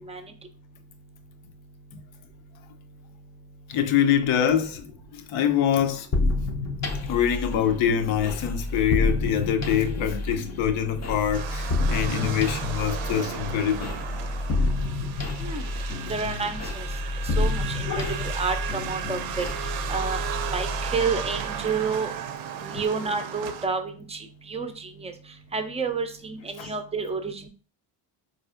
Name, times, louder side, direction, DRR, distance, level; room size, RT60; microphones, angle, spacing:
voice 1, 3.7-6.1 7.0-13.9 17.9-18.1 26.6-26.7, left 9 dB, 70° left, 0.6 m, -25 dB
sound 1, 6.1-21.8, left 2 dB, 35° left, 0.5 m, -29 dB
sound 2, 11.3-23.7, right 9 dB, 70° right, 0.6 m, -35 dB
voice 2, 16.1-16.9 17.4-19.4 19.9-20.2 20.5-22.1 22.6-25.1 25.5-27.5, right 5 dB, 15° right, 0.4 m, -30 dB
4.0 x 2.5 x 2.4 m
supercardioid pair, 80°, 49 cm